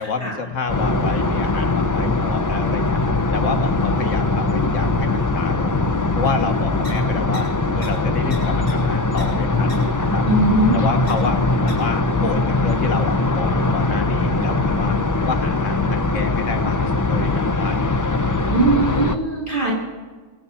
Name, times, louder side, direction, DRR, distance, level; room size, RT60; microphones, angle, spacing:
voice 1, 0.0-3.0 3.3-5.8 6.2-7.5 7.7-10.2 10.7-15.0 15.3-18.0, left 4 dB, 80° left, 5 dB, 1.7 m, -29 dB
sound 1, 0.7-19.2, left 2 dB, 20° left, 0.6 m, -21 dB
sound 2, 6.8-6.9 7.3-7.4 7.8-7.9 8.3-8.4 8.7-8.8 9.2-9.3 9.7-9.8 11.1-11.2 11.7-11.8, left 2 dB, 60° left, 6.4 m, -37 dB
voice 2, 10.3-10.8 18.5-19.7, right 2 dB, 40° right, -5 dB, 2.8 m, -19 dB
23.5 x 8.7 x 5.7 m, 1.4 s
omnidirectional pair, 1.3 m